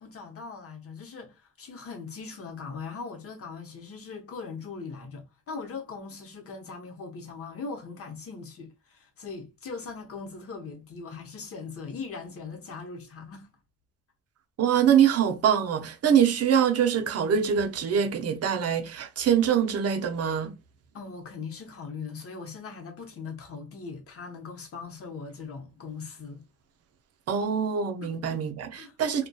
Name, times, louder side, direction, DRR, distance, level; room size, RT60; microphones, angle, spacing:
voice 1, 0.0-13.6 20.9-26.4 28.0-28.4 28.7-29.0, left 4 dB, 50° left, 0.8 m, -40 dB
voice 2, 14.6-20.5 27.3-29.3, right 8 dB, 55° right, 0.6 m, -24 dB
2.6 x 2.2 x 2.3 m
cardioid pair, 90°, 30 cm